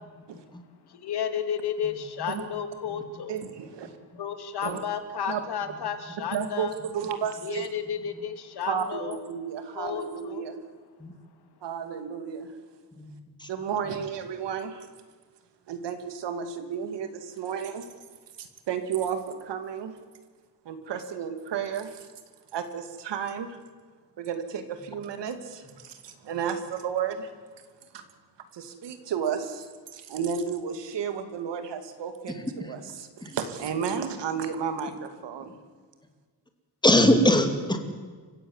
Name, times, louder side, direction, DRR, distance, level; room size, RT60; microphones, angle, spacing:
voice 1, 0.9-3.3 4.2-6.7 7.4-9.2 9.7-10.4, left 7 dB, 65° left, 9 dB, 2.6 m, -32 dB
voice 2, 3.3-4.0 4.6-4.8 5.3-5.4 6.3-7.7 8.6-10.6 11.6-12.6 13.5-14.9 15.7-17.9 18.4-20.0 20.6-22.1 22.5-23.6 24.2-27.3 27.9-28.0 28.5-35.5, right 7 dB, 85° right, 9 dB, 2.7 m, -32 dB
voice 3, 32.3-32.7 33.2-33.4 36.8-37.8, left 1 dB, 10° left, 6 dB, 2.6 m, -23 dB
29.0 x 16.5 x 7.4 m, 1.5 s
wide cardioid pair, 155°, 41 cm